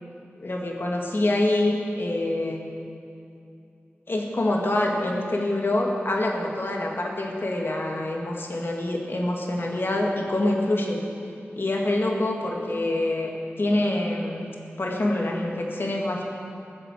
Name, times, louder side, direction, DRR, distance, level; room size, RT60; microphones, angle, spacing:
voice 1, 0.4-2.6 4.1-11.0 11.6-13.3 13.6-14.5 14.8-16.2, left 1 dB, 55° left, -1 dB, 2.2 m, -25 dB
16.0 x 6.7 x 7.7 m, 2.6 s
cardioid pair, 45°, 5 cm